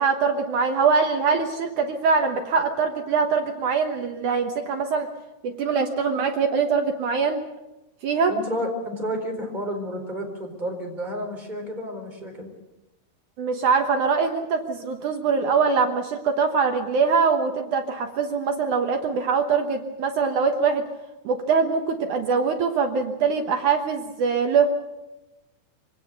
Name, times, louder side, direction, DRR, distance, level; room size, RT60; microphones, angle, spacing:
voice 1, 0.0-5.1 5.4-7.4 8.0-8.3 13.4-20.9 21.2-24.7, right 5 dB, 65° right, 5 dB, 2.2 m, -23 dB
voice 2, 8.3-12.5, equal, 10° right, 2 dB, 4.3 m, -31 dB
24.5 x 18.5 x 6.6 m, 0.99 s
omnidirectional pair, 4.6 m